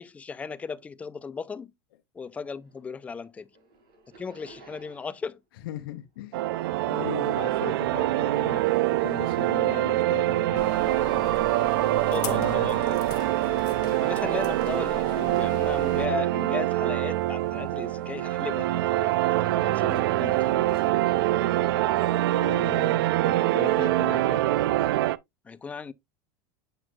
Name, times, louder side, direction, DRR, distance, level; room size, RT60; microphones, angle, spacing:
voice 1, 0.0-1.7 2.1-3.5 4.2-5.4 12.1-13.0 13.9-20.7 25.4-25.9, left 5 dB, 10° left, 0.3 m, -36 dB
sound 1, 2.5-3.1 3.4-5.4 5.7-8.5 8.9-17.2 17.7-18.4 19.2-20.9, right 2 dB, 70° right, 4.8 m, -58 dB
voice 2, 5.6-6.6 6.9-8.7 9.0-10.8 12.3-12.8 21.4-21.5 22.3-24.4, left 12 dB, 80° left, 0.9 m, -38 dB
sound 2, 6.3-25.2, right 15 dB, 85° right, 0.4 m, -25 dB
sound 3, 10.6-16.1, left 10 dB, 35° left, 1.0 m, -41 dB
7.8 x 6.0 x 2.3 m
supercardioid pair, 155°, 12 cm